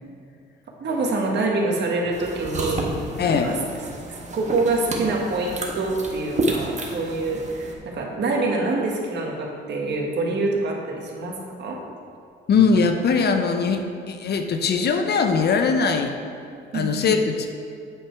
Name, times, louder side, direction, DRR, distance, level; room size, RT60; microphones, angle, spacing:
voice 1, 0.8-3.6 4.1-11.8 16.7-17.2, right 2 dB, 60° right, 0 dB, 1.5 m, -26 dB
sound 1, 2.1-7.7, right 1 dB, 35° right, 1.2 m, -30 dB
voice 2, 3.2-3.5 12.5-16.2 16.7-17.5, left 5 dB, 55° left, 6 dB, 0.8 m, -21 dB
8.8 x 5.0 x 4.6 m, 2.4 s
cardioid pair, 90°, 20 cm